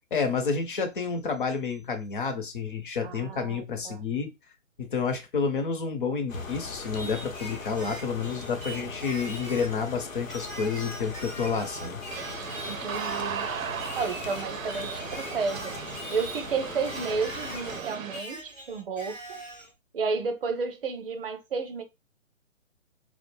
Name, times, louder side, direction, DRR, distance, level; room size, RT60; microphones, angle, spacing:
voice 1, 0.1-4.3 4.8-12.0, left 5 dB, 40° left, 0.7 m, -30 dB
voice 2, 3.0-4.0 12.7-13.5 14.0-15.7 16.1-19.4 19.9-21.8, right 4 dB, 45° right, 0.7 m, -32 dB
sound 1, 6.3-17.8, left 3 dB, 90° left, 0.8 m, -40 dB
Singing, 6.9-9.8 10.3-13.3 13.8-16.5 16.8-19.7, right 1 dB, 5° right, 0.4 m, -42 dB
sound 2, 12.1-18.2, right 7 dB, 85° right, 0.5 m, -37 dB
2.4 x 2.0 x 3.1 m
figure-of-eight pair, 140°, 39 cm